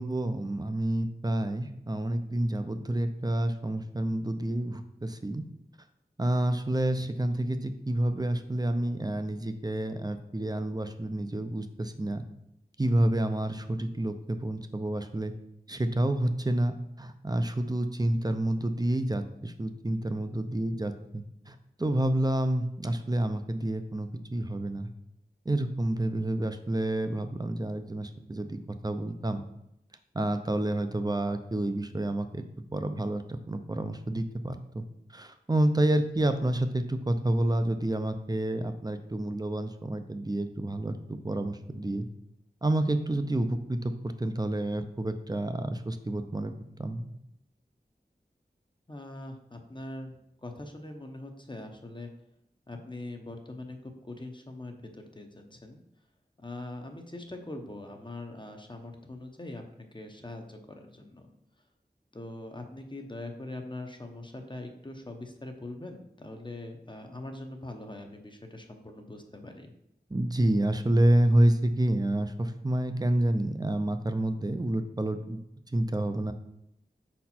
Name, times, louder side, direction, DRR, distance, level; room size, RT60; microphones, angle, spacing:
voice 1, 0.0-5.4 6.2-12.2 12.8-15.3 15.7-24.9 25.5-29.4 30.1-32.4 32.7-34.8 35.1-42.1 42.6-46.5 46.8-47.1 70.1-75.4 75.7-76.3, right 1 dB, 25° right, 8 dB, 0.5 m, -29 dB
voice 2, 48.9-52.1 52.7-55.8 56.4-61.3 62.1-69.7, left 2 dB, 30° left, 4 dB, 0.8 m, -42 dB
5.2 x 4.3 x 4.2 m, 0.79 s
wide cardioid pair, 55°, 17 cm